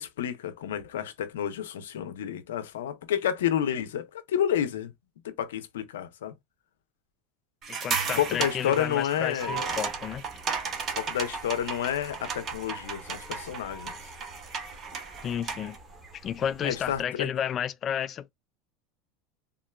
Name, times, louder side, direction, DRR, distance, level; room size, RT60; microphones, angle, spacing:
voice 1, 0.0-4.9 5.2-6.3 8.2-9.7 11.0-13.9 16.6-17.3, left 10 dB, 90° left, 0.6 m, -30 dB
chain link fence abuse, 7.6-15.8, right 5 dB, 40° right, 0.9 m, -35 dB
voice 2, 7.7-10.2 15.2-15.8 16.1-18.3, left 9 dB, 40° left, 0.4 m, -32 dB
sound 1, 9.4-17.0, right 4 dB, 20° right, 1.1 m, -45 dB
3.7 x 2.1 x 2.2 m
supercardioid pair, 100°, 0 cm